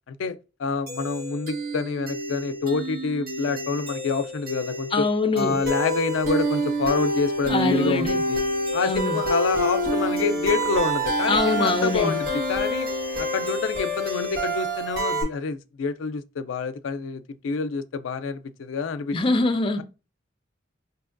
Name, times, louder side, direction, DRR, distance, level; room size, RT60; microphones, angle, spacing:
voice 1, 0.1-5.1 5.4-8.4 8.7-12.9 13.2-19.2, left 5 dB, 90° left, 0.4 m, -27 dB
sound 1, 0.9-15.2, right 1 dB, 50° right, 1.3 m, -27 dB
voice 2, 4.9-5.6 7.5-8.2 8.8-9.2 11.3-12.2 19.1-19.8, left 3 dB, 30° left, 0.5 m, -24 dB
4.5 x 2.7 x 2.5 m
head